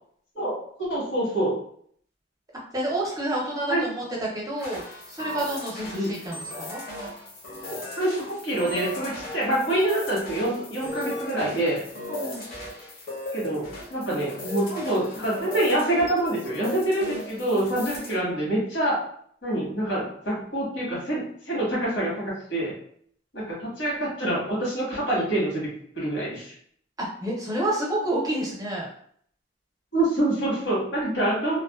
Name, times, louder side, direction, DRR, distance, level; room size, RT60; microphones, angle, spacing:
voice 1, 0.3-1.5 3.7-3.8 5.9-6.1 7.7-11.8 13.3-19.0 19.4-22.7 23.3-26.5 29.9-31.6, right 1 dB, 80° left, -5 dB, 1.3 m, -26 dB
voice 2, 2.7-6.8 12.1-12.5 27.0-28.9, right 1 dB, 20° right, -3 dB, 0.6 m, -29 dB
sound 1, 4.6-18.2, left 1 dB, 50° left, 0.8 m, -37 dB
2.5 x 2.2 x 2.3 m, 0.62 s
head